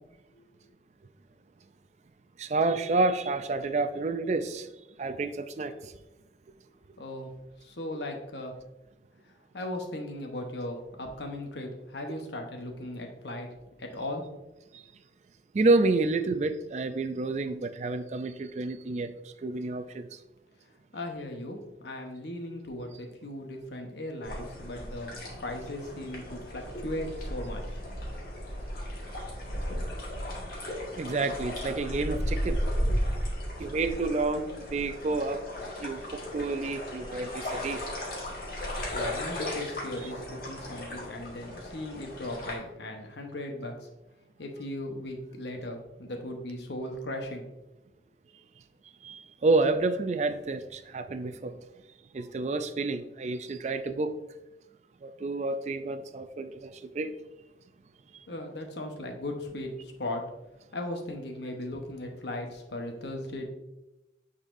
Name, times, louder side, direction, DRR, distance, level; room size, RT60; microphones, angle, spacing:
voice 1, 2.4-4.7 5.0-5.9 14.7-14.8 15.5-19.1 19.4-20.1 31.0-32.6 33.6-35.4 35.8-37.8 49.0-51.5 52.1-54.1 55.0-57.1, right 3 dB, 40° right, 0.3 m, -29 dB
voice 2, 7.0-7.3 7.6-8.5 9.5-13.5 13.8-14.2 20.9-25.1 25.4-27.8 38.9-43.9 44.4-47.5 58.3-60.2 60.7-63.5, left 1 dB, 75° left, 1.0 m, -37 dB
sound 1, 24.2-42.5, equal, 50° left, 1.6 m, -35 dB
9.0 x 4.1 x 2.6 m
head